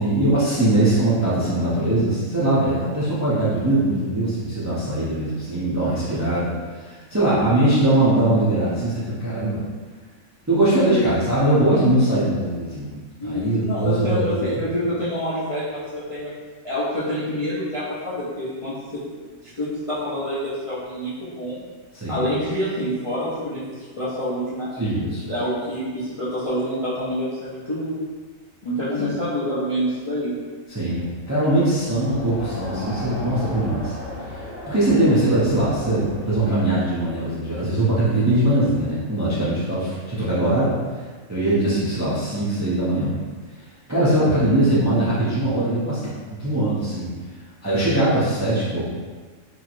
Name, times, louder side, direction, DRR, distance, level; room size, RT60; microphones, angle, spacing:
voice 1, 0.0-9.6 10.5-14.3 21.9-22.3 24.8-25.2 29.0-29.1 30.7-33.9 34.3-40.7 41.3-43.2 43.9-46.0 46.3-47.1 47.6-48.9, right 1 dB, 25° right, -10 dB, 0.3 m, -21 dB
voice 2, 13.2-16.3 16.6-18.7 19.4-21.6 22.1-24.7 25.3-28.0 28.6-30.3, equal, 40° left, -11 dB, 0.4 m, -27 dB
Crowd, 31.7-36.9, left 1 dB, 75° left, 1.1 m, -35 dB
2.9 x 2.8 x 2.5 m, 1.5 s
omnidirectional pair, 1.4 m